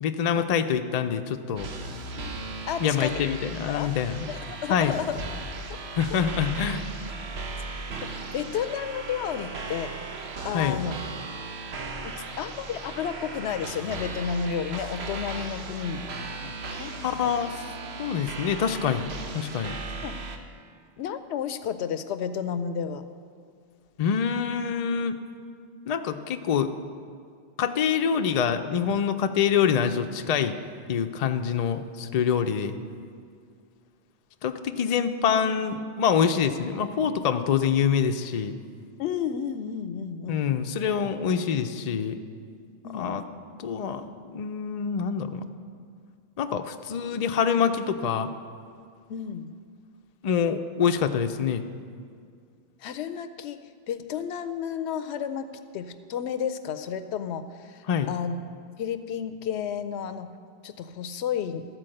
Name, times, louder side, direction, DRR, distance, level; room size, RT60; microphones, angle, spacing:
voice 1, 0.0-1.7 2.8-4.2 4.7-5.0 6.0-6.8 10.5-10.8 17.0-17.6 18.0-19.8 24.0-25.2 25.9-26.7 27.6-30.6 30.9-32.8 34.4-38.5 40.3-42.2 42.9-43.2 43.6-44.1 44.3-45.4 46.4-48.3 50.2-51.6 57.9-58.1, left 7 dB, 50° left, 7 dB, 0.5 m, -25 dB
sound 1, 1.6-20.4, right 2 dB, 70° right, 1.1 m, -37 dB
voice 2, 2.7-3.2 3.7-3.9 4.3-5.2 5.7-5.8 8.0-9.9 10.4-11.0 12.0-17.3 20.0-20.2 21.0-23.0 39.0-40.5 42.8-43.2 49.1-49.5 52.8-53.6 53.9-58.4 58.8-60.4 60.6-61.7, left 7 dB, 80° left, 10 dB, 0.9 m, -32 dB
12.5 x 4.6 x 7.7 m, 2.2 s
omnidirectional pair, 1.1 m